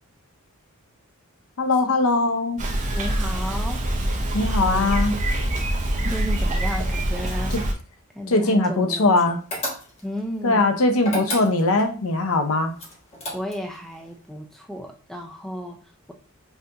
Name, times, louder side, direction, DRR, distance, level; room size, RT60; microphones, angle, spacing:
voice 1, 1.6-2.6 4.3-5.1 8.3-9.4 10.4-12.7, left 2 dB, 65° left, 0.6 m, -20 dB
Bicycle, 2.6-7.7, right 1 dB, 35° right, 0.7 m, -24 dB
voice 2, 2.9-3.8 4.6-4.9 6.1-7.5 8.1-9.3 10.0-10.7 13.3-16.1, equal, ahead, 0.4 m, -33 dB
sound 1, 9.5-10.2 11.0-11.9 12.8-13.8, equal, 30° left, 1.1 m, -31 dB
5.6 x 2.6 x 2.8 m
head